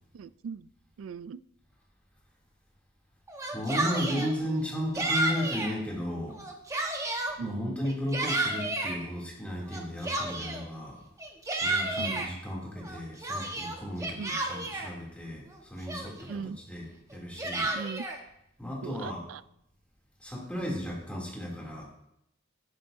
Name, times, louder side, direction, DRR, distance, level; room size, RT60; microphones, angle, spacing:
voice 1, 0.1-0.7 1.0-1.4 3.9-4.6 7.4-7.8 12.0-12.3 14.1-14.4 16.3-16.6 17.7-18.0 18.8-19.4, right 6 dB, 80° right, 16 dB, 0.3 m, -39 dB
Yell, 3.3-4.3 4.9-5.7 6.3-7.3 7.8-9.0 9.7-10.7 11.2-12.3 12.8-14.9 15.5-15.6 15.9-16.4 17.1-18.2, right 2 dB, 15° right, 1.1 m, -31 dB
voice 2, 3.5-6.4 7.4-11.0 11.6-17.7 18.6-19.2 20.2-21.8, equal, 5° left, -4 dB, 2.7 m, -35 dB
11.0 x 10.5 x 2.6 m, 0.79 s
head